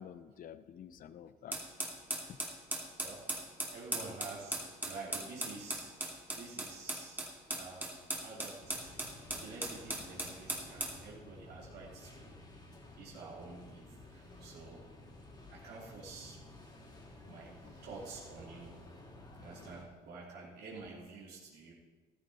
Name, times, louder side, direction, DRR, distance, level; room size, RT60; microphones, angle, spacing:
voice 1, 0.0-1.6 2.3-2.4 17.3-17.4 17.6-17.7, left 9 dB, 55° left, 13 dB, 0.7 m, -50 dB
sound 1, 1.5-11.0, right 1 dB, 10° right, 2.4 m, -39 dB
voice 2, 3.7-8.9 9.3-12.3 13.0-14.8 15.5-16.4 17.2-18.7 19.4-21.7, right 3 dB, 75° right, -4 dB, 3.0 m, -49 dB
sound 2, 8.6-19.8, left 2 dB, 25° left, 3.0 m, -54 dB
14.5 x 12.5 x 4.1 m, 1.4 s
cardioid pair, 110°, 17 cm